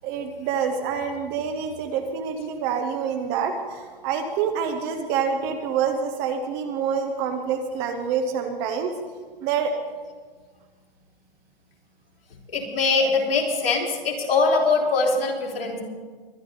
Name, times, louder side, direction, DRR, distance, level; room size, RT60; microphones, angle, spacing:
voice 1, 0.0-8.9 9.4-9.7, right 6 dB, 10° right, 6 dB, 0.4 m, -27 dB
voice 2, 12.5-15.8, left 4 dB, 75° left, -1 dB, 3.8 m, -22 dB
23.0 x 10.0 x 4.1 m, 1.5 s
hypercardioid pair, 150°, 29 cm